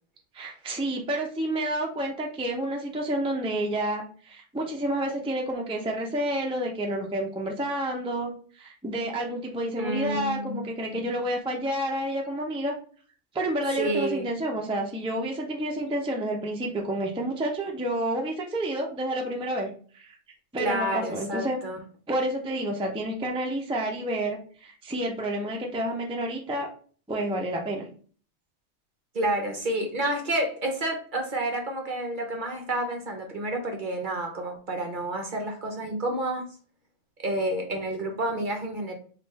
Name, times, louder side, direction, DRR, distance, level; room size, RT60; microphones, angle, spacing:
voice 1, 0.3-12.7 13.3-19.7 19.9-20.1 20.5-21.6 22.1-26.7 27.1-27.9, right 1 dB, 5° right, 0 dB, 0.5 m, -29 dB
voice 2, 9.8-10.7 10.9-11.2 13.8-14.3 20.6-21.8 29.1-36.4 37.2-38.9, right 1 dB, 50° right, 3 dB, 0.8 m, -29 dB
3.6 x 2.5 x 4.1 m, 0.43 s
omnidirectional pair, 1.3 m